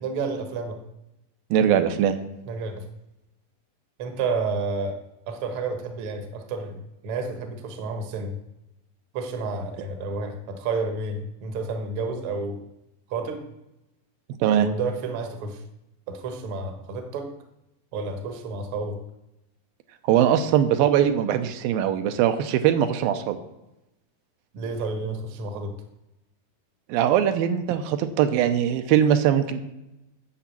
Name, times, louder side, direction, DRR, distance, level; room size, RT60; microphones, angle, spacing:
voice 1, 0.0-0.8 2.4-2.8 4.0-5.0 5.3-8.3 9.1-12.6 13.1-13.4 14.5-15.6 16.1-17.3 17.9-19.0 24.5-25.7, right 3 dB, 60° right, 6 dB, 1.5 m, -30 dB
voice 2, 1.5-2.2 14.4-14.7 20.0-23.4 26.9-29.6, right 10 dB, 80° right, 9 dB, 2.5 m, -21 dB
8.7 x 7.0 x 8.4 m, 0.91 s
omnidirectional pair, 4.2 m